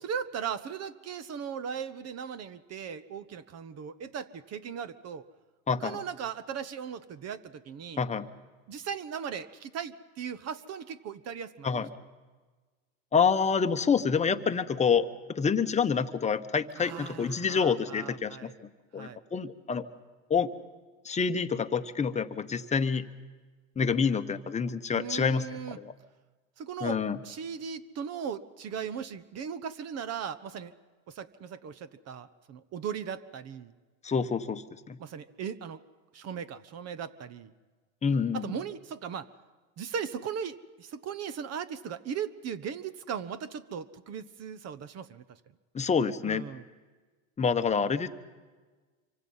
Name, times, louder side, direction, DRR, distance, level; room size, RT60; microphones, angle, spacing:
voice 1, 0.0-5.2 5.8-8.0 8.7-11.8 16.8-18.6 19.0-19.2 24.9-25.8 26.6-30.7 31.1-33.7 35.0-35.8 36.1-37.5 38.3-39.3 39.8-45.4 46.2-46.6, right 7 dB, 35° right, 15 dB, 1.0 m, -38 dB
voice 2, 5.7-6.0 8.0-8.3 11.6-11.9 13.1-18.5 18.9-19.9 20.3-20.5 21.0-23.0 23.8-25.4 25.8-25.9 26.8-27.2 34.0-35.0 38.0-38.5 45.7-46.4 47.4-48.1, left 6 dB, 15° left, 9 dB, 1.0 m, -27 dB
26.0 x 24.5 x 5.6 m, 1.4 s
supercardioid pair, 115°, 42 cm